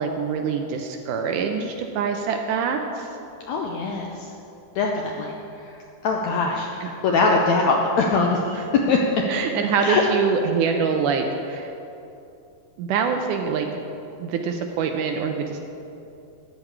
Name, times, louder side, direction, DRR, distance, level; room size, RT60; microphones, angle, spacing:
voice 1, 0.0-3.1 6.8-6.9 8.5-8.7 9.3-11.7 12.8-13.7 14.2-15.6, right 5 dB, 80° right, 4 dB, 2.0 m, -25 dB
voice 2, 3.5-4.1 4.8-5.3 6.0-8.6 8.9-9.0 9.8-10.0, left 4 dB, 75° left, 0 dB, 1.6 m, -22 dB
13.0 x 5.2 x 8.7 m, 2.7 s
omnidirectional pair, 4.1 m